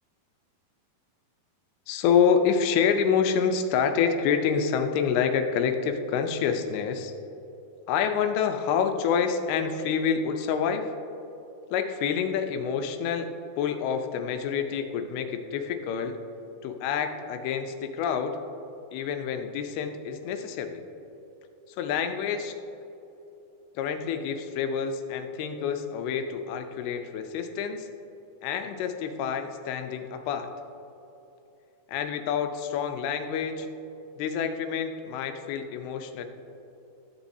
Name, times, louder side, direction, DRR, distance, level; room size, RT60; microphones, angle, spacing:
voice 1, 1.9-7.1 7.9-10.9 11.7-13.3 13.6-16.2 16.6-18.4 18.9-20.8 21.7-22.6 23.8-27.9 28.4-30.5 31.9-33.7 34.2-36.3, left 7 dB, 85° left, 6 dB, 2.6 m, -27 dB
14.0 x 7.1 x 2.7 m, 3.0 s
omnidirectional pair, 4.4 m